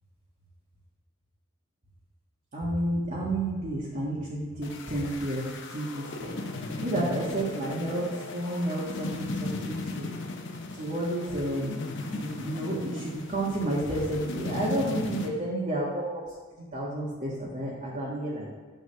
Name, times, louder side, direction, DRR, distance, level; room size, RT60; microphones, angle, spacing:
voice 1, 2.5-5.4 5.7-6.3 6.8-8.1 8.3-10.1 10.8-11.8 12.1-16.0 16.7-18.6, right 1 dB, 35° right, -7 dB, 1.6 m, -31 dB
sound 1, 4.6-15.3, left 2 dB, 55° left, 0.9 m, -36 dB
10.0 x 3.8 x 6.6 m, 1.5 s
head